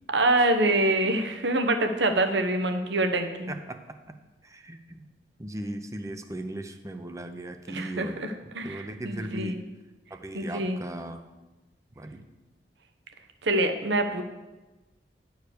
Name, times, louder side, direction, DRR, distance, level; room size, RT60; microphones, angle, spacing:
voice 1, 0.1-3.5 7.7-9.6 10.3-10.8 13.4-14.2, right 2 dB, 80° right, 6 dB, 1.0 m, -25 dB
voice 2, 3.5-4.2 4.4-5.0 5.4-8.2 8.6-9.6 10.1-11.2 12.0-12.2, right 1 dB, 15° right, 8 dB, 0.6 m, -37 dB
10.5 x 4.7 x 6.7 m, 1.1 s
head